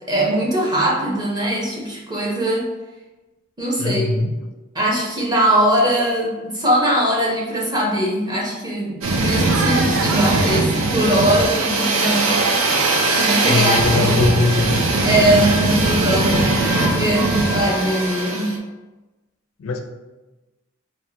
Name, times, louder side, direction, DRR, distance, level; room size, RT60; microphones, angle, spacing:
voice 1, 0.0-2.7 3.6-4.0 4.7-12.4 13.1-14.3 15.0-18.6, right 1 dB, 20° right, -4 dB, 0.8 m, -21 dB
voice 2, 3.8-4.3 13.5-14.8 19.6-19.8, left 3 dB, 80° left, 5 dB, 0.4 m, -20 dB
sound 1, 9.0-18.6, right 2 dB, 75° right, 0.5 m, -20 dB
4.4 x 2.1 x 2.8 m, 1.1 s
head